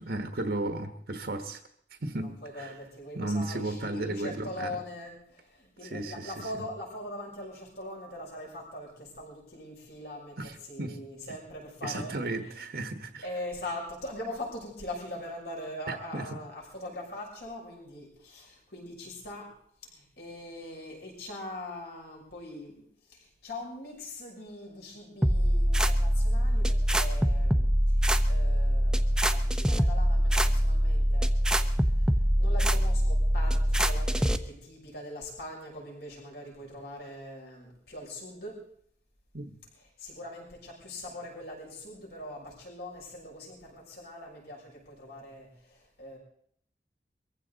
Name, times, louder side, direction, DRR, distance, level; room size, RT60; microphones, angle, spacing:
voice 1, 0.0-1.6 2.0-2.7 3.1-4.8 5.8-6.3 10.4-11.0 11.8-13.3 15.9-16.3 39.3-39.5, right 2 dB, 60° right, 1.2 m, -34 dB
voice 2, 2.1-12.6 13.2-19.5 19.9-38.6 39.7-46.2, left 1 dB, 65° left, 6.3 m, -42 dB
sound 1, 25.2-34.4, equal, 5° right, 0.7 m, -24 dB
23.0 x 15.0 x 4.0 m
head